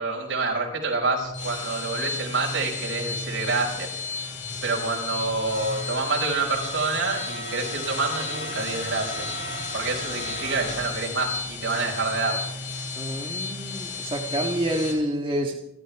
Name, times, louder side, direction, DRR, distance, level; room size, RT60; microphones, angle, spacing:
voice 1, 0.0-3.9 4.6-9.2 9.7-12.4, right 3 dB, 75° right, -1 dB, 5.6 m, -27 dB
sound 1, 1.2-14.9, left 3 dB, 65° left, 5.5 m, -33 dB
voice 2, 12.9-15.5, right 1 dB, 25° right, -1 dB, 1.6 m, -28 dB
28.5 x 13.0 x 3.6 m, 0.79 s
head